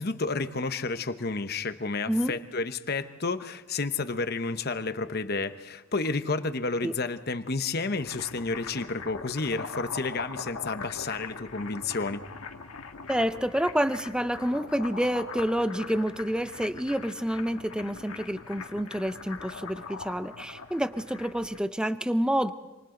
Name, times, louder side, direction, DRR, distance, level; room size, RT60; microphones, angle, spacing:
voice 1, 0.0-12.2, left 3 dB, 45° left, 10 dB, 1.0 m, -31 dB
sound 1, 7.7-21.6, left 4 dB, 80° left, 1.4 m, -41 dB
voice 2, 13.1-22.5, equal, 5° right, 11 dB, 0.6 m, -28 dB
27.5 x 27.0 x 3.9 m, 1.1 s
head